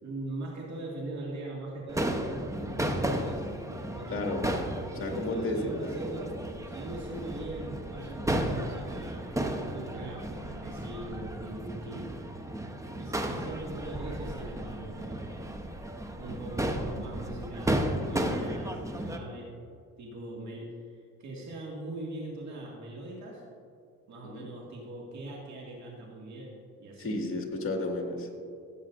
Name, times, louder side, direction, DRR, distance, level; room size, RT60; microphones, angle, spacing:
voice 1, 0.0-4.3 4.9-12.1 13.0-15.5 16.2-19.5 20.0-23.4 24.1-27.1, right 2 dB, 65° right, -3 dB, 2.1 m, -41 dB
Crowd / Fireworks, 1.9-19.2, right 1 dB, 10° right, 0.9 m, -34 dB
voice 2, 4.1-4.4 5.0-6.0 24.2-24.5 27.0-28.3, left 2 dB, 45° left, 1 dB, 2.0 m, -32 dB
16.0 x 8.2 x 2.6 m, 2.4 s
cardioid pair, 90°, 30 cm